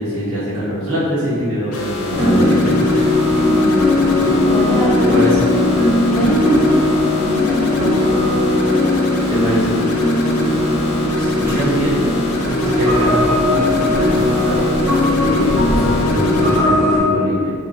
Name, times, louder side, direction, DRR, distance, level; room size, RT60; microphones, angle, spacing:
voice 1, 0.0-3.1 5.0-5.6 9.3-9.8 11.4-12.0 12.4-14.6 15.1-17.5, equal, 70° right, -10 dB, 1.3 m, -23 dB
sound 1, 1.7-16.6, left 2 dB, 70° left, 0.5 m, -26 dB
sound 2, 2.1-17.0, left 2 dB, 15° right, 0.9 m, -17 dB
voice 2, 3.3-4.1 4.4-4.9 6.1-8.4 10.5-10.6 11.2-11.6, equal, 5° left, -8 dB, 0.5 m, -23 dB
sound 3, 11.1-16.5, equal, 40° right, 0.9 m, -30 dB
3.0 x 2.4 x 3.4 m, 2.2 s
head